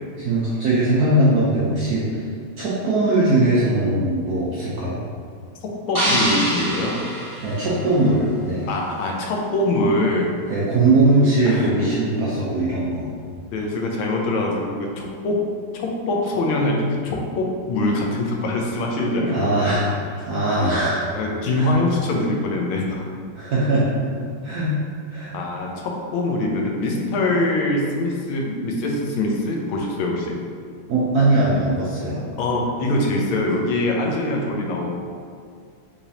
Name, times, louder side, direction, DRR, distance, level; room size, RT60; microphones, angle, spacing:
voice 1, 0.2-2.2 2.6-5.0 7.4-8.7 10.5-13.1 19.2-21.0 21.5-21.7 23.3-24.1 24.4-24.7 25.1-25.3 30.9-32.2, right 2 dB, 75° right, -8 dB, 0.9 m, -20 dB
voice 2, 5.9-7.0 8.7-10.3 11.4-11.9 13.5-15.4 15.7-19.5 21.1-23.0 25.3-30.4 32.4-35.1, left 2 dB, 80° left, 0 dB, 1.4 m, -23 dB
sound 1, 5.9-8.2, equal, 30° right, 0.4 m, -25 dB
3.9 x 3.1 x 2.7 m, 2.1 s
omnidirectional pair, 2.2 m